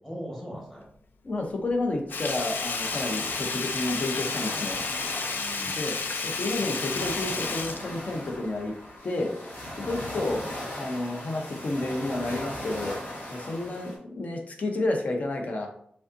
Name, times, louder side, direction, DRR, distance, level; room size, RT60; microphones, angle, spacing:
voice 1, 0.0-0.9 5.3-5.9 9.8-10.1 13.4-13.8, equal, 10° left, -3 dB, 1.5 m, -41 dB
voice 2, 1.2-4.8 5.7-8.7 9.0-9.3 9.9-10.4 10.8-13.0 13.3-15.7, left 2 dB, 45° left, 3 dB, 0.7 m, -30 dB
Sink (filling or washing), 2.1-8.6 9.0-9.1, left 4 dB, 85° left, 0.5 m, -32 dB
sound 1, 2.4-14.0, left 1 dB, 65° left, 1.4 m, -39 dB
5.3 x 3.5 x 2.6 m, 0.67 s
wide cardioid pair, 165°, 3 cm